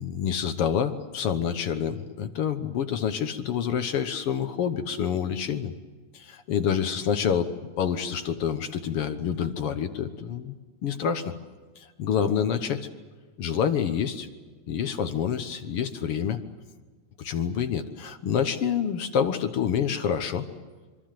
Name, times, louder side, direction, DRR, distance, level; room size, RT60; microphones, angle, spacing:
voice 1, 0.0-5.7 6.1-10.6 10.8-11.3 11.8-12.9 13.4-14.3 14.7-16.4 17.2-20.5, left 8 dB, 60° left, 8 dB, 1.6 m, -27 dB
25.0 x 24.5 x 7.6 m, 1.4 s
omnidirectional pair, 3.7 m